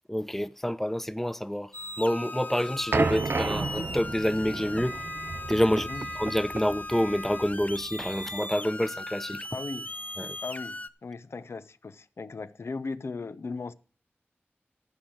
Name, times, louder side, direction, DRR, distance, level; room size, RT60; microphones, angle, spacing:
voice 1, 0.1-1.7 2.0-5.0 5.5-5.9 6.1-9.5 10.2-10.4, equal, 5° left, 0.8 m, -28 dB
sound 1, 1.7-10.9, left 2 dB, 40° left, 0.8 m, -38 dB
sound 2, 2.9-8.3, right 3 dB, 60° right, 0.4 m, -32 dB
Microwave oven, 3.0-5.6 5.9-6.4 6.9-7.5 7.9-8.5, right 2 dB, 45° right, 1.0 m, -46 dB
voice 2, 5.8-6.1 9.5-9.9 10.4-13.7, left 4 dB, 80° left, 0.6 m, -37 dB
14.0 x 4.7 x 7.8 m
cardioid pair, 40°, 4 cm